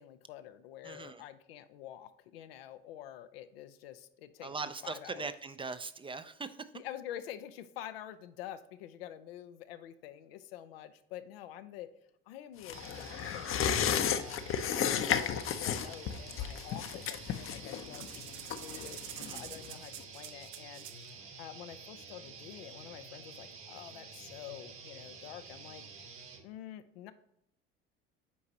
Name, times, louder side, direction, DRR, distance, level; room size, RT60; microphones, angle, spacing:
voice 1, 0.0-4.6 4.8-5.3 6.7-11.9 12.3-14.5 15.1-20.9 21.4-25.9 26.4-27.1, left 11 dB, 80° left, 10 dB, 0.6 m, -47 dB
voice 2, 0.8-1.2 4.4-6.7 19.2-19.5, right 4 dB, 15° right, 11 dB, 0.5 m, -41 dB
sound 1, 12.6-19.7 20.0-20.1, left 8 dB, 45° left, 0.7 m, -33 dB
sound 2, 12.7-26.4, right 4 dB, 45° right, 1.4 m, -50 dB
sound 3, 17.9-21.1, right 11 dB, 60° right, 0.7 m, -47 dB
8.4 x 4.7 x 2.8 m, 0.79 s
hypercardioid pair, 70°, 30 cm